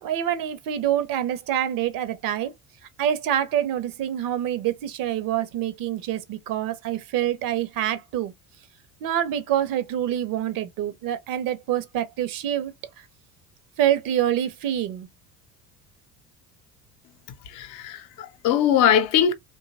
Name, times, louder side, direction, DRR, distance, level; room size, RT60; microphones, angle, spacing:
voice 1, 0.0-2.5 3.0-8.3 9.0-12.7 13.8-15.1, right 11 dB, 45° right, 0.7 m, -26 dB
voice 2, 17.4-19.3, left 9 dB, 55° left, 0.7 m, -21 dB
2.7 x 2.3 x 2.6 m
figure-of-eight pair, 65°, 47 cm